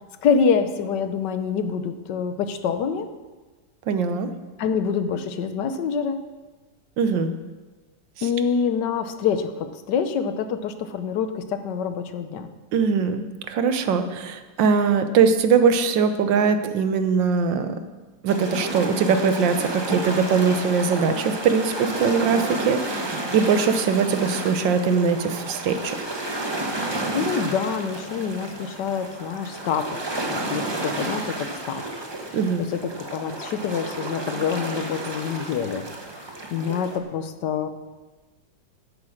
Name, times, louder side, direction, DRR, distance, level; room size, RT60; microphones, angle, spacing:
voice 1, 0.2-3.1 4.6-6.2 8.2-12.5 26.8-31.8 32.3-35.9 36.1-36.2 36.5-37.7, left 6 dB, 70° left, 9 dB, 1.4 m, -26 dB
voice 2, 3.9-4.3 7.0-7.3 12.7-17.7 18.2-26.0 32.3-32.6, right 5 dB, 80° right, 9 dB, 1.6 m, -21 dB
sound 1, 18.3-37.0, right 2 dB, 20° right, 0.9 m, -31 dB
10.5 x 9.6 x 6.5 m, 1.3 s
omnidirectional pair, 2.0 m